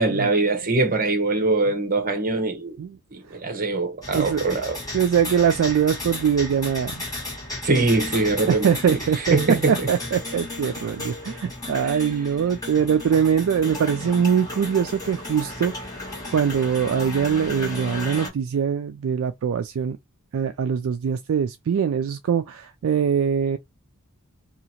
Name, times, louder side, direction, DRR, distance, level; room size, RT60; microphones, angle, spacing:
voice 1, 0.0-2.8 3.1-4.8 7.6-8.7 9.3-9.9 11.8-12.0, right 3 dB, 40° right, 0.9 m, -22 dB
sound 1, 4.0-18.3, left 2 dB, 15° left, 1.6 m, -34 dB
voice 2, 4.1-4.6 4.9-7.0 8.5-15.8 16.0-20.0 20.3-23.6, right 7 dB, 60° right, 0.3 m, -23 dB
2.8 x 2.4 x 4.1 m
head